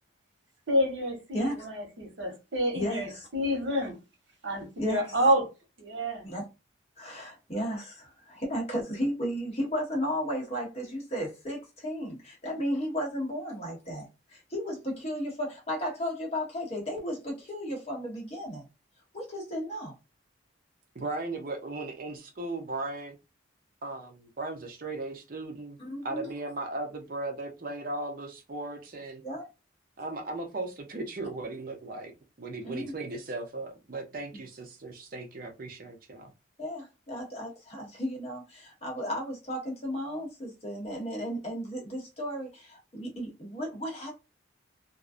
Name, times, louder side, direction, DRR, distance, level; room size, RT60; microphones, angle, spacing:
voice 1, 0.7-3.9 4.4-5.5 5.8-6.2, equal, 70° right, 1.1 m, -28 dB
voice 2, 2.7-3.3 4.8-5.0 6.2-6.5 7.0-18.7 19.1-19.9 25.8-26.3 29.2-29.4 32.6-32.9 36.6-44.1, equal, 35° left, 1.0 m, -34 dB
voice 3, 20.9-23.2 23.8-25.8 26.0-29.2 30.0-36.3, right 2 dB, 45° right, 0.5 m, -37 dB
2.5 x 2.0 x 2.4 m
head